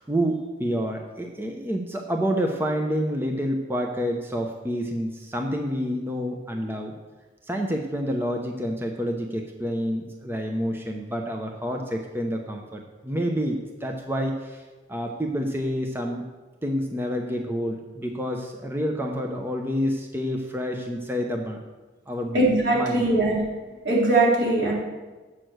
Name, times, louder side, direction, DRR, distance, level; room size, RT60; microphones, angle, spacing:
voice 1, 0.0-7.0 7.5-14.6 14.9-16.2 16.6-21.6 22.1-23.1, equal, 15° right, 2 dB, 0.8 m, -28 dB
voice 2, 22.3-23.4 23.8-24.7, right 2 dB, 85° right, -6 dB, 4.0 m, -20 dB
7.7 x 6.5 x 7.8 m, 1.2 s
head